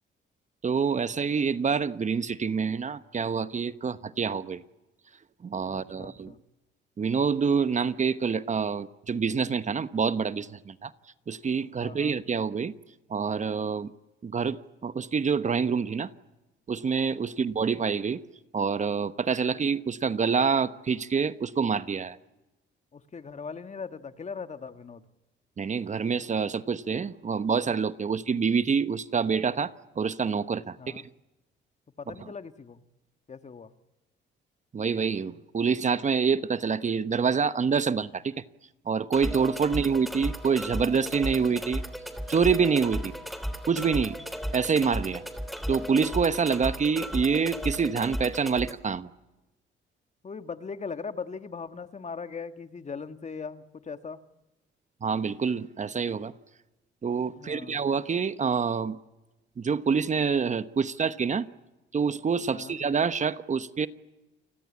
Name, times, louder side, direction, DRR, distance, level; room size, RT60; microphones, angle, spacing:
voice 1, 0.6-4.6 5.4-6.3 7.0-10.9 11.3-12.7 13.1-13.9 14.2-16.1 16.7-18.2 18.5-22.2 25.6-31.0 34.7-38.3 38.9-41.8 42.3-43.1 43.7-44.1 44.5-45.2 45.7-49.1 55.0-56.3 57.0-59.0 59.6-61.5 61.9-63.9, right 6 dB, 35° right, 1.1 m, -26 dB
voice 2, 5.7-6.4 11.8-12.2 17.4-17.6 22.9-25.0 30.8-31.1 32.0-32.8 33.3-33.7 39.7-40.3 43.0-43.2 50.2-54.2 57.4-57.8 62.5-62.8, left 5 dB, 35° left, 1.7 m, -40 dB
sound 1, 39.1-48.7, equal, ahead, 3.4 m, -35 dB
29.0 x 21.0 x 8.6 m
cardioid pair, 90°, 20 cm